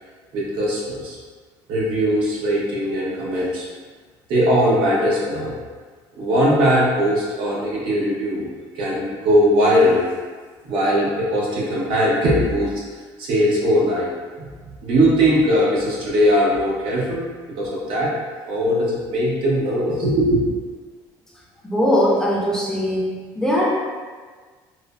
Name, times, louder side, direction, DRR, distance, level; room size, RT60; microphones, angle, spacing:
voice 1, 0.3-1.2 1.7-3.7 4.3-5.5 6.2-8.5 8.7-10.1 10.6-12.8 13.2-14.1 14.4-17.2 17.5-18.1 18.5-20.4, equal, 70° right, -5 dB, 0.7 m, -20 dB
voice 2, 21.6-23.7, equal, 5° left, -6 dB, 0.5 m, -20 dB
3.1 x 2.0 x 2.3 m, 1.5 s
cardioid pair, 135°, 9 cm